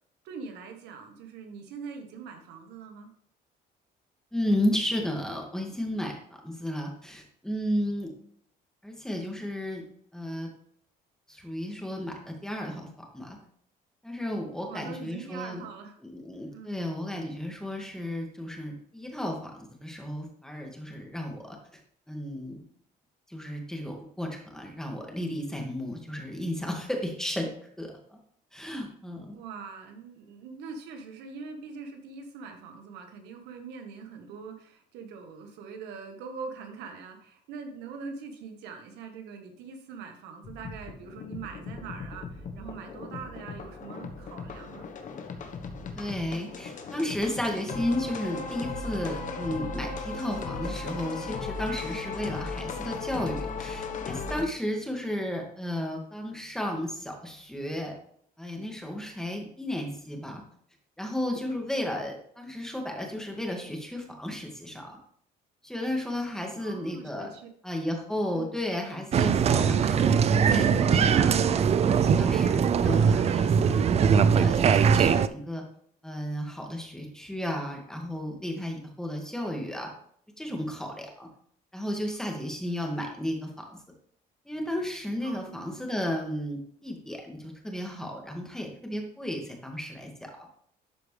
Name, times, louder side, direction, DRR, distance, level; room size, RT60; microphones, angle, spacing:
voice 1, 0.2-3.1 14.6-16.0 16.5-16.7 29.3-44.9 66.6-67.5 68.3-68.5 85.2-85.8, right 5 dB, 85° right, 5 dB, 1.4 m, -42 dB
voice 2, 4.3-6.1 6.4-8.1 8.8-9.8 10.1-10.5 11.3-12.9 13.1-13.4 14.0-15.6 16.0-21.6 22.1-22.6 23.3-27.5 27.8-28.2 28.5-29.4 45.9-57.9 58.4-60.4 61.0-65.0 65.6-67.3 67.6-71.6 72.0-75.6 76.0-79.9 80.4-81.3 81.7-83.8 84.5-90.5, left 1 dB, 5° left, 1 dB, 2.0 m, -33 dB
sound 1, 40.4-54.4, left 4 dB, 50° left, 1.2 m, -37 dB
Applause, 69.1-75.3, right 7 dB, 40° right, 0.4 m, -21 dB
12.0 x 5.0 x 3.3 m, 0.63 s
cardioid pair, 110°, 17 cm